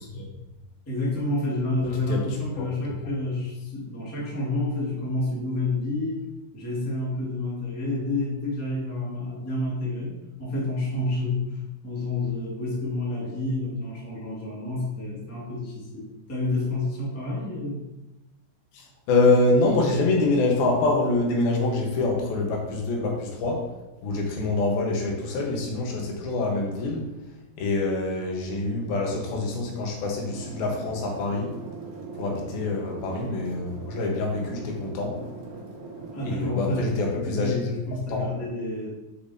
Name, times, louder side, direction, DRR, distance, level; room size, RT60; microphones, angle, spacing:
voice 1, 0.8-6.3 6.5-17.8 32.4-32.6 36.1-39.0, left 2 dB, 10° left, -5 dB, 0.9 m, -29 dB
voice 2, 19.1-23.6 24.0-27.0 27.6-31.5 32.2-35.1 36.2-37.7 38.1-38.3, left 2 dB, 80° left, 0 dB, 3.1 m, -25 dB
sound 1, 30.2-36.4, right 3 dB, 80° right, 3.3 m, -40 dB
8.2 x 6.7 x 2.8 m, 0.99 s
omnidirectional pair, 4.2 m